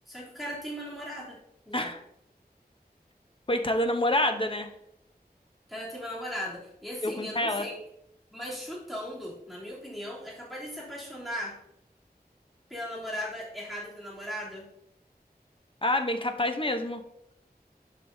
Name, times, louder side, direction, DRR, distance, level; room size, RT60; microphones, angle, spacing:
voice 1, 0.1-1.4 1.7-1.9 5.7-7.8 8.3-11.6 12.7-14.7, equal, ahead, -6 dB, 3.1 m, -37 dB
voice 2, 3.5-4.7 7.0-7.7 15.8-17.0, left 1 dB, 30° left, 6 dB, 0.9 m, -27 dB
11.0 x 5.4 x 2.8 m, 0.79 s
wide cardioid pair, 50°, 17 cm